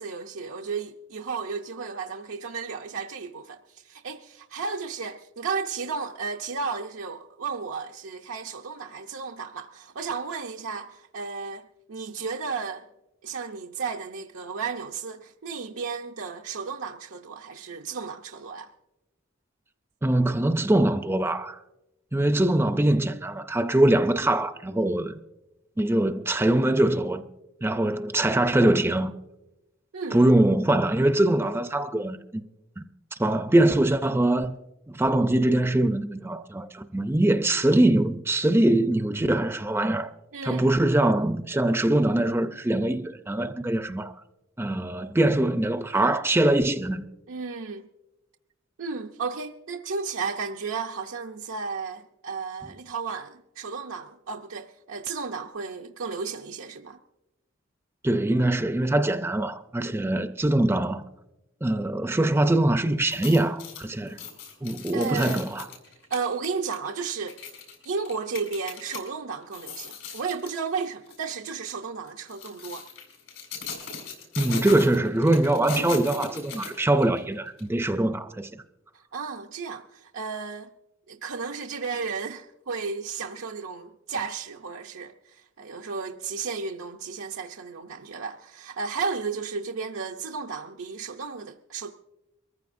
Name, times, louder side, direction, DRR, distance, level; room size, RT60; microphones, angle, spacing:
voice 1, 0.0-12.9 13.2-18.7 29.9-30.2 40.3-40.7 47.3-47.9 48.8-57.0 64.9-65.4 66.1-67.4 67.8-72.9 79.1-80.7 81.1-91.9, right 5 dB, 85° right, 0.6 m, -33 dB
voice 2, 20.0-21.6 22.1-25.2 25.8-27.2 27.6-29.1 30.1-32.4 32.8-32.9 33.1-34.5 34.9-40.1 40.4-44.1 44.6-47.0 58.0-61.0 61.6-64.2 64.6-65.6 74.4-78.5, right 1 dB, 10° right, 0.4 m, -23 dB
sound 1, 63.0-69.0 69.4-70.6 71.1-71.3 72.1-77.2 77.6-77.7, left 4 dB, 85° left, 4.9 m, -38 dB
23.0 x 14.5 x 2.6 m
head